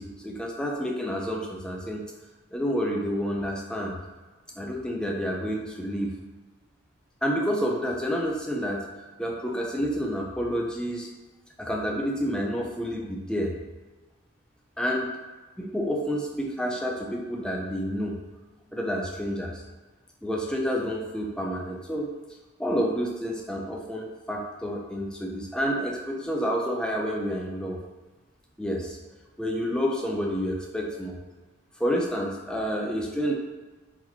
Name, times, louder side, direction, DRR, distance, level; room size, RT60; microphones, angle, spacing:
voice 1, 0.0-2.0 2.5-4.0 4.6-6.2 7.2-8.9 9.2-11.1 11.6-13.5 14.8-15.1 15.6-18.2 18.7-19.6 20.2-22.1 22.6-27.8 28.6-29.0 29.4-31.1 31.8-33.3, equal, 5° left, -1 dB, 0.4 m, -29 dB
4.0 x 2.9 x 2.7 m, 1.3 s
head